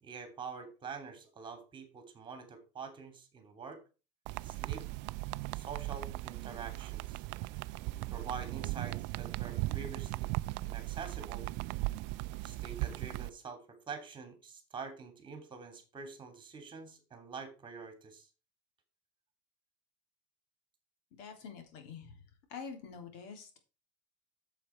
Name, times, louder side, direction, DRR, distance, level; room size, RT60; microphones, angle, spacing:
voice 1, 0.0-3.8 4.4-4.8 5.4-7.2 8.0-10.4 10.6-11.5 12.4-18.3, right 5 dB, 25° right, 7 dB, 2.9 m, -46 dB
sound 1, 4.3-13.3, right 20 dB, 60° right, 0.4 m, -38 dB
voice 2, 21.2-22.2 22.5-23.6, left 6 dB, 75° left, 5 dB, 3.3 m, -46 dB
8.6 x 7.6 x 4.6 m, 0.32 s
cardioid pair, 145°, 21 cm